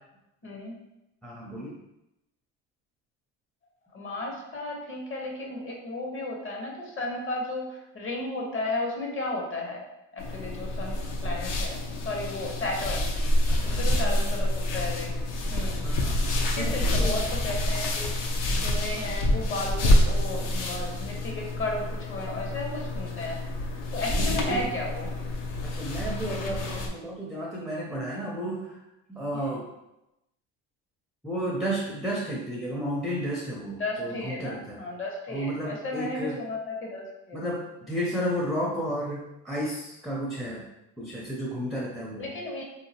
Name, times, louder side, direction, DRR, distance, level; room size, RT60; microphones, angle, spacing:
voice 1, 0.4-0.8 3.9-9.8 10.1-13.1 13.6-15.1 15.5-15.8 16.6-23.4 23.9-25.1 29.3-29.6 33.8-37.4 42.2-42.6, left 2 dB, 35° left, 0 dB, 0.9 m, -34 dB
voice 2, 1.2-1.8 13.5-14.3 15.8-17.2 24.1-24.6 25.6-28.8 29.1-29.7 31.2-34.8 35.3-36.4 37.3-40.6 41.0-42.3, equal, ahead, -4 dB, 0.5 m, -32 dB
sound 1, 10.2-26.9, left 1 dB, 60° left, 0.7 m, -27 dB
3.6 x 2.8 x 2.8 m, 0.90 s
cardioid pair, 120°, 36 cm